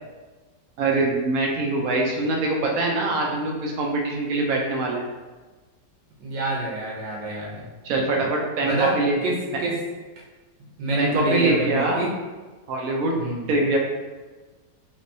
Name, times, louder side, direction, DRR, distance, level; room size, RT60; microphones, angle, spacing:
voice 1, 0.8-5.0 7.8-9.2 11.0-12.0 12.7-13.2 13.5-13.8, right 2 dB, 65° right, 0 dB, 0.9 m, -23 dB
voice 2, 6.2-7.6 8.6-8.9 9.2-9.3 9.6-9.7 10.8-12.1 13.2-13.4, right 1 dB, 90° right, -4 dB, 1.6 m, -27 dB
3.4 x 3.3 x 2.6 m, 1.3 s
omnidirectional pair, 1.9 m